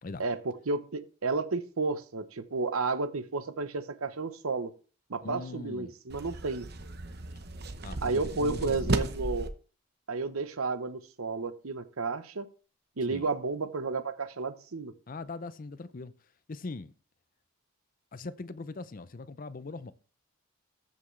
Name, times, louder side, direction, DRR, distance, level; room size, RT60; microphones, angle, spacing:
voice 1, 0.2-4.7 5.1-6.7 8.0-9.5 10.1-12.5 13.0-14.9, right 3 dB, 80° right, 0.9 m, -32 dB
voice 2, 5.2-6.0 7.8-9.1 13.1-13.3 15.1-16.9 18.1-19.9, left 3 dB, 40° left, 0.5 m, -41 dB
sound 1, 6.1-9.5, right 2 dB, 50° right, 0.9 m, -35 dB
14.0 x 5.9 x 3.2 m
head